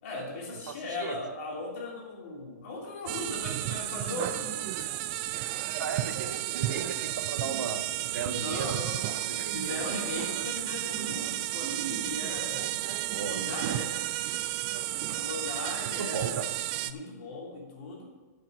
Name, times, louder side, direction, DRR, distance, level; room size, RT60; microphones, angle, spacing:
voice 1, 0.0-4.5 4.8-4.9 8.3-12.8 13.2-14.0 15.1-16.4 16.8-18.1, left 2 dB, 45° left, -1 dB, 3.1 m, -38 dB
voice 2, 0.7-1.2 5.8-8.8 9.2-9.8 10.3-10.5 13.1-13.4 15.8-16.4, right 6 dB, 90° right, 8 dB, 1.1 m, -37 dB
sound 1, 3.1-16.9, right 14 dB, 30° right, 0.4 m, -32 dB
10.0 x 6.8 x 6.2 m, 1.3 s
hypercardioid pair, 155°, 10 cm